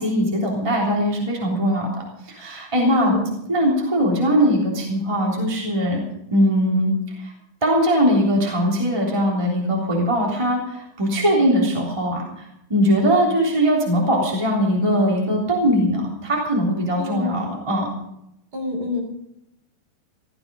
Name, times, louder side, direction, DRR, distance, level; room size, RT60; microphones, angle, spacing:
voice 1, 0.0-1.9 2.2-3.1 3.5-6.0 6.3-6.9 7.2-7.3 7.6-17.9, equal, 10° right, -2 dB, 3.2 m, -20 dB
voice 2, 2.8-3.3 17.0-17.4 18.5-19.0, left 2 dB, 30° right, 1 dB, 4.0 m, -27 dB
17.0 x 14.0 x 5.3 m, 0.81 s
omnidirectional pair, 3.9 m